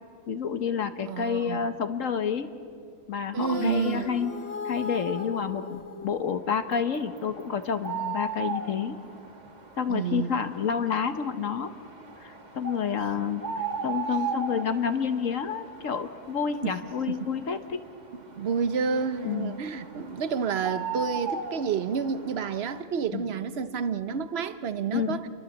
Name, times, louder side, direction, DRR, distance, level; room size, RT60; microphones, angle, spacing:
voice 1, 0.3-2.5 3.1-4.3 4.6-9.0 9.8-11.7 12.2-17.6 19.2-19.6 23.1-23.2 24.9-25.2, left 7 dB, 60° left, 1.3 m, -29 dB
voice 2, 1.1-1.7 3.3-4.1 9.9-10.5 16.6-16.7 17.1-17.2 18.1-25.3, right 6 dB, 45° right, 1.1 m, -29 dB
sound 1, 3.4-6.8, left 4 dB, 40° left, 1.8 m, -37 dB
sound 2, 6.5-22.8, right 5 dB, 30° right, 1.6 m, -38 dB
28.5 x 22.5 x 7.2 m
omnidirectional pair, 1.6 m